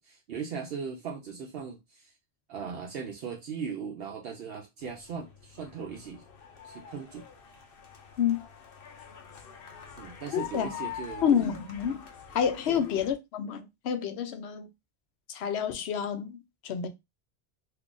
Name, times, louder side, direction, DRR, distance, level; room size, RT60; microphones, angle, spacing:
voice 1, 0.0-2.1 2.5-6.2 6.6-7.2 10.0-11.5 12.7-12.8, right 6 dB, 70° right, 0.8 m, -38 dB
sound 1, 4.8-13.1, left 8 dB, 65° left, 0.9 m, -45 dB
voice 2, 10.3-10.7 11.2-12.1 12.3-14.7 15.3-16.4 16.6-16.9, left 8 dB, 90° left, 0.9 m, -28 dB
2.8 x 2.4 x 3.7 m
omnidirectional pair, 1.1 m